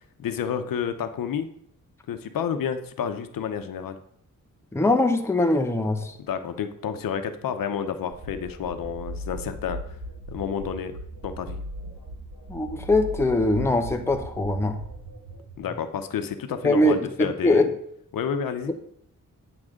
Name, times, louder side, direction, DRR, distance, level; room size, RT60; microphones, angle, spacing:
voice 1, 0.2-1.5 2.1-4.0 6.3-10.0 10.3-10.9 11.2-11.6 15.6-17.7 18.1-18.7, left 7 dB, 85° left, 9 dB, 0.8 m, -30 dB
voice 2, 4.7-6.2 12.5-14.8 16.6-17.7, left 2 dB, 10° left, 4 dB, 0.7 m, -22 dB
sound 1, 8.1-15.7, equal, 75° right, 3.5 m, -38 dB
8.8 x 3.7 x 6.4 m, 0.69 s
wide cardioid pair, 155°, 33 cm